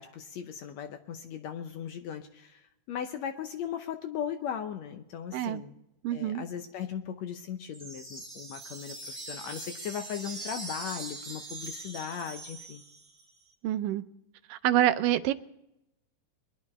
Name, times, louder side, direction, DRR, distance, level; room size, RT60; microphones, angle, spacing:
voice 1, 0.0-2.6 2.9-5.7 6.1-12.8, left 8 dB, 75° left, 7 dB, 1.7 m, -38 dB
voice 2, 6.0-6.4 13.6-14.0 14.5-15.3, right 12 dB, 85° right, 12 dB, 2.3 m, -26 dB
sound 1, 7.7-13.2, right 3 dB, 25° right, 2.9 m, -42 dB
22.0 x 11.0 x 4.2 m, 0.85 s
omnidirectional pair, 3.8 m